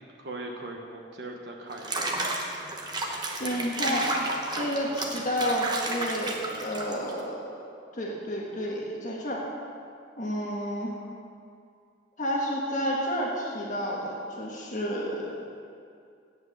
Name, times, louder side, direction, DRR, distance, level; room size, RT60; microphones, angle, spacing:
voice 1, 0.0-2.1, right 2 dB, 60° right, 0 dB, 1.1 m, -40 dB
Water / Bathtub (filling or washing), 1.7-7.2, right 2 dB, 20° right, 1.0 m, -32 dB
voice 2, 3.4-4.1 4.5-7.5 7.9-9.4 10.2-10.9 12.2-15.3, equal, 40° left, -3 dB, 1.5 m, -30 dB
9.0 x 8.0 x 7.8 m, 2.4 s
head